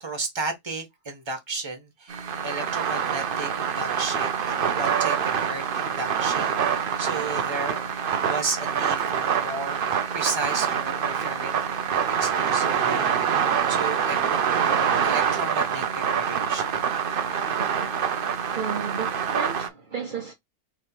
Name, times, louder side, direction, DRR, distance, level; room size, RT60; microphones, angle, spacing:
voice 1, 0.0-7.8 8.2-11.7 12.2-13.1 13.7-14.5 15.0-16.7, right 3 dB, 20° right, 1.1 m, -33 dB
sound 1, 2.1-19.7, right 7 dB, 60° right, 0.5 m, -25 dB
voice 2, 17.6-17.9 18.5-20.3, right 5 dB, 40° right, 0.8 m, -33 dB
3.6 x 3.2 x 4.3 m
omnidirectional pair, 1.6 m